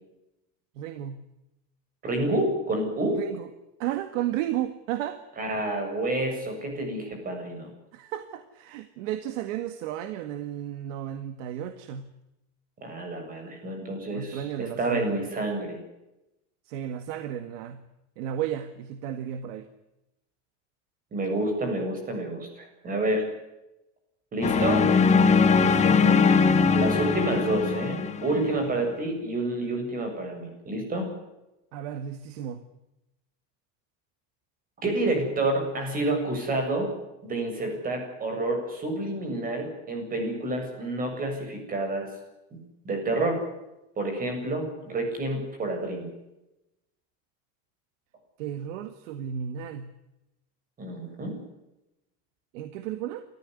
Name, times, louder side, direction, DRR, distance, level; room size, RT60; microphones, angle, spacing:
voice 1, 0.8-1.2 3.1-3.5 3.8-5.2 7.9-12.1 14.1-15.4 16.7-17.8 18.2-19.7 25.5-26.3 31.7-32.6 48.4-49.9 52.5-53.3, right 10 dB, 85° right, 10 dB, 2.0 m, -33 dB
voice 2, 2.0-3.2 5.4-7.7 12.8-15.8 21.1-23.2 24.3-24.9 26.7-31.1 34.8-36.9 37.2-42.1 42.8-43.4 44.0-46.1 50.8-51.3, right 2 dB, 25° right, 5 dB, 7.7 m, -29 dB
sound 1, 24.4-28.6, left 5 dB, 20° left, 1.7 m, -21 dB
28.5 x 14.5 x 9.7 m, 0.93 s
cardioid pair, 170°, 36 cm